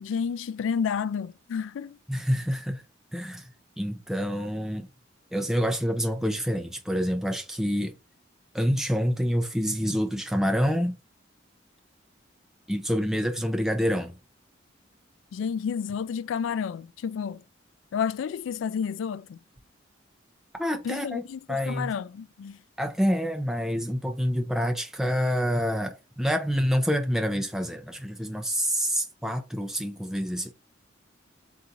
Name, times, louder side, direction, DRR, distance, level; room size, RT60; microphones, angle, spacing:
voice 1, 0.0-2.0 15.3-17.4 17.9-19.4 20.8-21.4 21.7-22.6, left 7 dB, 90° left, 0.3 m, -30 dB
voice 2, 2.1-2.8 3.1-3.5 3.8-4.9 5.3-7.9 8.5-11.0 12.7-14.1 20.6-21.9 22.8-30.5, equal, ahead, 0.4 m, -27 dB
3.9 x 2.4 x 4.0 m
head